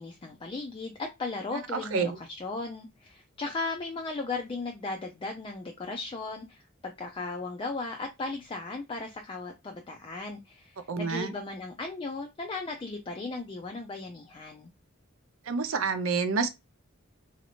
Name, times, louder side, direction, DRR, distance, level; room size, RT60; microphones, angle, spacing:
voice 1, 0.0-14.7, left 3 dB, 25° left, 0.4 m, -36 dB
voice 2, 1.7-2.2 10.9-11.3 15.5-16.5, right 4 dB, 70° right, 0.5 m, -28 dB
3.1 x 2.7 x 2.9 m
head